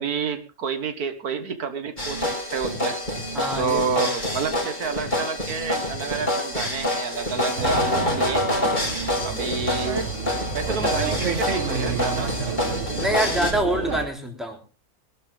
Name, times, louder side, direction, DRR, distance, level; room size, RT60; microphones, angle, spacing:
voice 1, 0.0-3.0 3.6-8.5 9.2-10.0 10.5-12.3, right 5 dB, 85° right, 9 dB, 1.9 m, -29 dB
sound 1, 2.0-13.5, left 1 dB, 30° left, 5.9 m, -27 dB
voice 2, 3.3-3.8 12.9-14.6, right 1 dB, ahead, 1 dB, 3.3 m, -25 dB
sound 2, 7.6-14.1, right 5 dB, 55° right, 1.7 m, -29 dB
21.0 x 12.0 x 3.5 m, 0.32 s
omnidirectional pair, 1.5 m